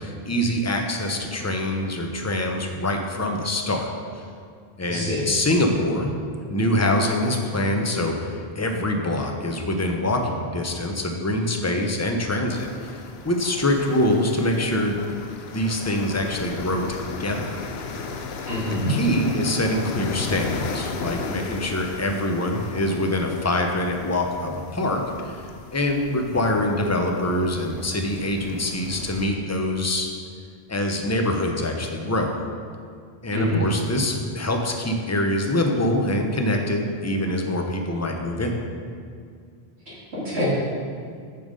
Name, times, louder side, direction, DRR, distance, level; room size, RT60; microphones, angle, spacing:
voice 1, 0.0-3.9 4.1-4.2 4.8-6.1 6.5-15.0 15.5-17.9 18.7-25.5 25.7-30.1 30.7-32.4 33.2-38.5, left 1 dB, 15° left, 2 dB, 0.7 m, -24 dB
voice 2, 4.9-5.3 18.5-18.9 33.3-33.6 39.9-40.4, left 1 dB, 85° right, -10 dB, 3.0 m, -26 dB
sound 1, 12.5-29.2, left 4 dB, 75° left, 0.9 m, -35 dB
7.2 x 7.0 x 5.3 m, 2.2 s
omnidirectional pair, 1.1 m